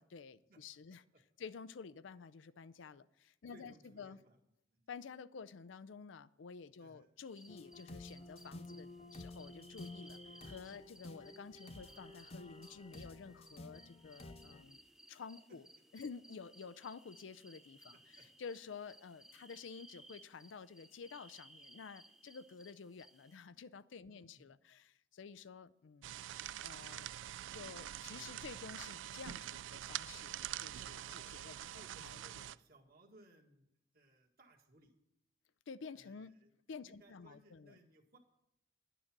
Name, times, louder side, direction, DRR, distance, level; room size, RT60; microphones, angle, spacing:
voice 1, 0.0-1.0 1.4-4.2 4.9-14.8 15.1-15.7 15.9-18.0 18.4-26.1 26.6-27.1 27.5-32.5 35.7-36.3 36.7-37.8, left 5 dB, 80° left, 17 dB, 0.5 m, -51 dB
voice 2, 0.9-1.2 3.5-4.4 4.7-4.8 6.8-7.1 15.5-15.6 17.9-18.3 24.1-24.5 31.0-33.7 33.9-35.0 35.9-36.5 36.8-38.2, right 1 dB, 50° right, 2 dB, 1.7 m, -64 dB
sound 1, 7.3-23.4, right 1 dB, 5° right, 0.5 m, -61 dB
sound 2, 7.5-14.6, left 2 dB, 30° left, 0.7 m, -52 dB
sound 3, 26.0-32.6, right 12 dB, 80° right, 0.3 m, -45 dB
11.0 x 9.1 x 5.9 m, 0.81 s
head